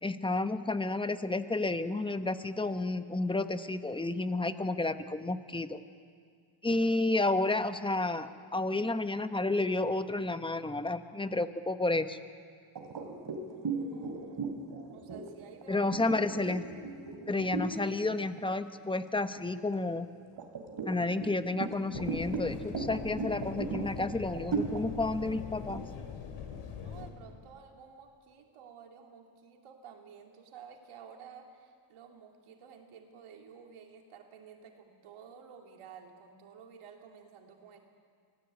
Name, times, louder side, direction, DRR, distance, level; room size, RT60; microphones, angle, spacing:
voice 1, 0.0-5.8 6.6-12.2 15.7-16.7 17.3-20.1 20.8-25.8, left 2 dB, 10° left, 10 dB, 1.0 m, -31 dB
sound 1, 12.8-17.9 18.3-18.6 19.0-19.8 20.4-27.1, right 4 dB, 50° right, 3.2 m, -37 dB
voice 2, 13.3-15.9 26.7-37.8, right 7 dB, 85° right, 2 dB, 2.9 m, -52 dB
sound 2, 21.9-27.1, left 7 dB, 80° left, 2.7 m, -42 dB
25.0 x 18.0 x 8.3 m, 2.1 s
cardioid pair, 95°, 49 cm